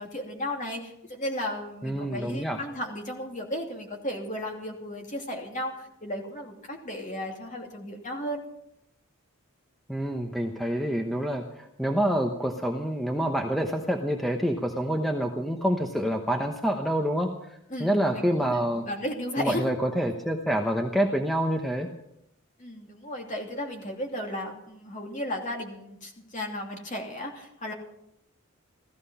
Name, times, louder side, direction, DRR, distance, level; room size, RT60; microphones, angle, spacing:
voice 1, 0.0-8.4 17.7-19.7 22.6-27.7, left 1 dB, 35° left, 1 dB, 2.9 m, -35 dB
voice 2, 1.8-2.6 9.9-18.8 19.4-21.9, equal, ahead, 3 dB, 1.0 m, -27 dB
16.0 x 14.0 x 5.6 m, 0.79 s
head